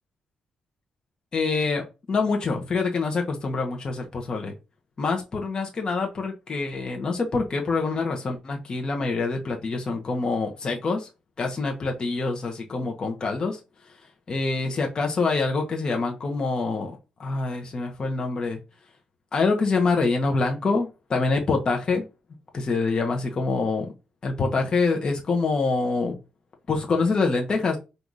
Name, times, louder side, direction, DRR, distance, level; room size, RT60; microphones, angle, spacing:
voice 1, 1.3-4.5 5.0-11.1 11.4-13.6 14.3-16.9 17.2-18.6 19.3-22.0 22.5-23.9 24.2-26.2 26.7-27.8, left 3 dB, 35° left, 0.9 m, -25 dB
4.0 x 2.6 x 4.7 m
cardioid pair, 140°, 2 cm